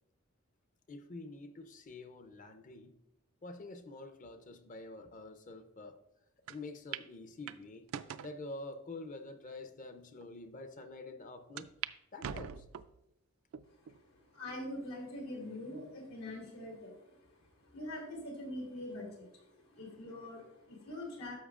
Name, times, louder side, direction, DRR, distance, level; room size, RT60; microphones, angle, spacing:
voice 1, 0.9-3.0 3.4-6.0 6.5-7.9 8.2-11.7 12.1-12.6, left 2 dB, 40° left, 8 dB, 0.6 m, -47 dB
sound 1, 6.5-6.6 6.9-7.1 7.5-8.3 9.0-9.1 9.8-9.9 10.2-10.3 11.6-11.9 12.2-13.0 13.5-14.0 14.5-14.6 15.7-16.2, right 9 dB, 70° right, 0.3 m, -43 dB
voice 2, 14.3-17.5 17.7-21.4, left 1 dB, 90° left, -1 dB, 3.0 m, -44 dB
10.5 x 6.9 x 2.5 m, 0.85 s
head